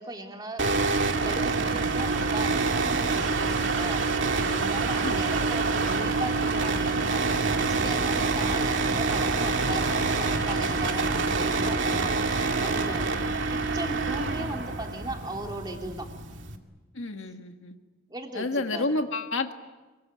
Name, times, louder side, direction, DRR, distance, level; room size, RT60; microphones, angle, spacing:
voice 1, 0.0-4.0 4.4-12.1 12.6-13.0 13.5-16.1 18.1-18.9, right 2 dB, 20° right, 2 dB, 3.1 m, -38 dB
sound 1, 0.6-16.6, right 3 dB, 60° right, 2.4 m, -26 dB
voice 2, 16.9-17.7 18.3-19.5, left 2 dB, 70° left, 6 dB, 1.8 m, -29 dB
25.5 x 23.5 x 9.6 m, 1.3 s
head